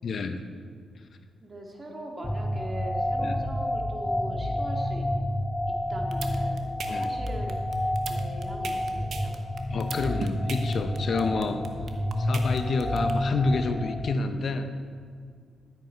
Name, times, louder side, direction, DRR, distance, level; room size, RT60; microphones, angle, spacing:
voice 1, 0.0-0.4 3.2-3.3 6.9-7.1 9.7-11.6 12.2-14.7, left 4 dB, 55° left, 8 dB, 0.8 m, -29 dB
voice 2, 1.4-5.1 5.7-9.4, right 1 dB, 30° right, 0 dB, 2.1 m, -41 dB
sound 1, 2.2-14.1, left 1 dB, 10° left, 0.7 m, -29 dB
sound 2, 5.9-13.1, right 6 dB, 65° right, 1.1 m, -38 dB
14.5 x 8.2 x 4.5 m, 2.1 s
cardioid pair, 90°, 0 cm